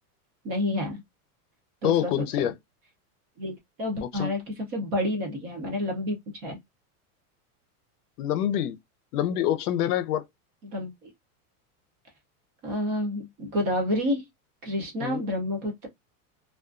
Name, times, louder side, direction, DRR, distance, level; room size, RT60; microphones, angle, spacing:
voice 1, 0.4-1.0 1.8-2.5 3.4-6.6 10.6-11.1 12.6-14.3 14.6-15.9, left 1 dB, 20° right, 0.5 m, -29 dB
voice 2, 1.8-2.5 4.1-4.3 8.2-8.8 9.1-10.2 15.0-15.2, left 11 dB, 85° left, 0.6 m, -26 dB
2.3 x 2.3 x 2.3 m
supercardioid pair, 170°, 45 cm